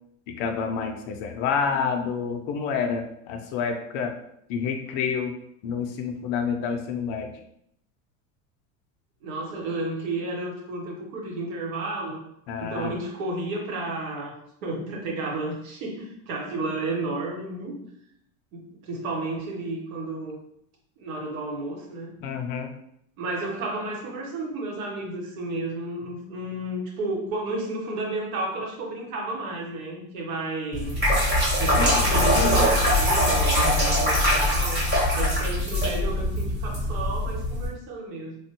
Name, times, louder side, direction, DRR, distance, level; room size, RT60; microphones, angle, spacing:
voice 1, 0.3-4.1 4.5-5.3 5.6-7.3 12.5-12.9 22.2-22.7 31.7-31.9 32.1-32.7 33.5-34.0, left 6 dB, 50° left, 4 dB, 0.5 m, -28 dB
voice 2, 9.2-12.2 12.6-14.3 14.6-17.8 18.5-20.4 21.0-22.1 23.2-31.0 31.6-33.6 34.0-38.4, right 2 dB, 75° right, 0 dB, 1.1 m, -32 dB
sound 1, 30.7-37.7, equal, 25° right, 1.2 m, -22 dB
3.4 x 2.2 x 2.8 m, 0.72 s
supercardioid pair, 145°, 41 cm